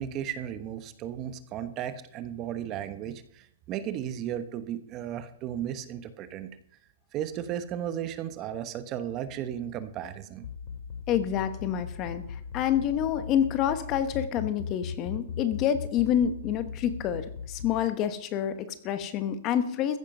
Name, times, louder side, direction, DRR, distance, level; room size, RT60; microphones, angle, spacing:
voice 1, 0.0-6.5 7.1-10.4, right 10 dB, 25° right, 11 dB, 1.0 m, -35 dB
sound 1, 10.3-17.7, left 7 dB, 65° left, 2.2 m, -37 dB
voice 2, 11.1-20.0, left 9 dB, 25° left, 11 dB, 1.1 m, -28 dB
15.0 x 10.5 x 5.4 m, 0.65 s
hypercardioid pair, 165°, 0 cm